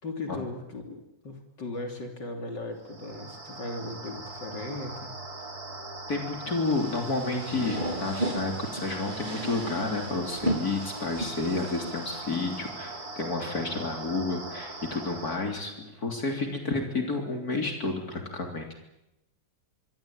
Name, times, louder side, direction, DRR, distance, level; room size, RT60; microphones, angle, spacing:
voice 1, 0.0-5.1, left 2 dB, 75° left, 4 dB, 3.8 m, -37 dB
sound 1, 2.8-15.4, right 2 dB, 55° right, 4.2 m, -40 dB
voice 2, 6.1-18.7, left 3 dB, 55° left, 3 dB, 3.8 m, -30 dB
sound 2, 6.6-12.7, right 1 dB, 25° right, 3.6 m, -35 dB
25.0 x 24.5 x 9.0 m, 0.89 s
omnidirectional pair, 1.9 m